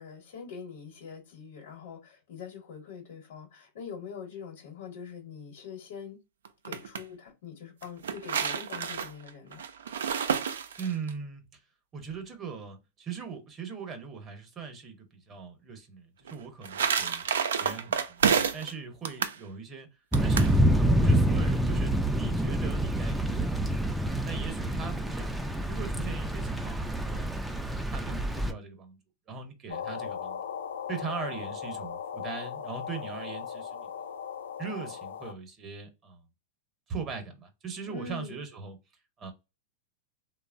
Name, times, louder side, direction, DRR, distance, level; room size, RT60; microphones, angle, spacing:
voice 1, 0.0-6.2 6.6-9.6 37.9-38.4, left 6 dB, 70° left, 0.9 m, -43 dB
sound 1, 6.4-7.0 7.8-11.1 16.3-18.7 19.0-19.4 20.1-20.5, right 7 dB, 85° right, 0.4 m, -29 dB
voice 2, 10.8-11.4 11.9-17.2 17.6-18.3 18.5-19.9 20.2-24.0 24.3-27.3 27.9-29.0 29.3-30.4 30.9-33.9 34.6-36.2 36.9-38.8 39.2-39.3, right 5 dB, 30° right, 0.8 m, -40 dB
Thunder / Rain, 20.1-28.5, right 1 dB, 5° right, 0.3 m, -27 dB
sound 2, 29.7-35.3, left 7 dB, 90° left, 0.5 m, -38 dB
2.9 x 2.0 x 2.5 m
hypercardioid pair, 120°, 0 cm